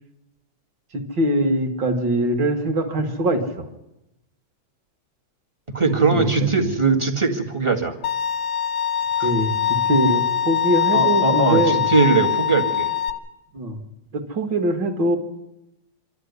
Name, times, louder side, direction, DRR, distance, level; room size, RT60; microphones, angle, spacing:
voice 1, 0.9-3.7 6.1-6.7 9.2-11.9 13.5-13.8 14.1-15.2, right 1 dB, 40° right, 5 dB, 2.5 m, -22 dB
voice 2, 5.7-8.0 10.9-12.9, right 4 dB, 15° right, 1 dB, 1.1 m, -20 dB
Bowed string instrument, 8.0-13.1, left 9 dB, 55° left, 1.3 m, -22 dB
26.0 x 12.5 x 9.6 m, 0.91 s
omnidirectional pair, 3.4 m